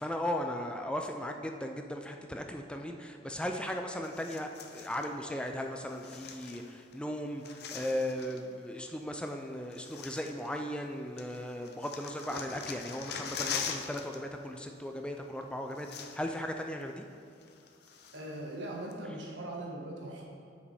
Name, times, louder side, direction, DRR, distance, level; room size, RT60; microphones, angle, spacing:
voice 1, 0.0-17.1, left 1 dB, 5° left, 4 dB, 0.3 m, -37 dB
sound 1, 4.0-5.1 5.9-7.0 7.2-8.5 9.3-9.4 9.7-10.9 11.2-14.2 14.4-14.7 15.4-15.5 15.7-16.5 16.8-16.9 17.4-18.4 18.9-19.0, left 6 dB, 60° left, 0.6 m, -42 dB
voice 2, 18.1-20.2, right 1 dB, 75° right, -2 dB, 1.4 m, -40 dB
8.2 x 5.0 x 4.9 m, 2.4 s
head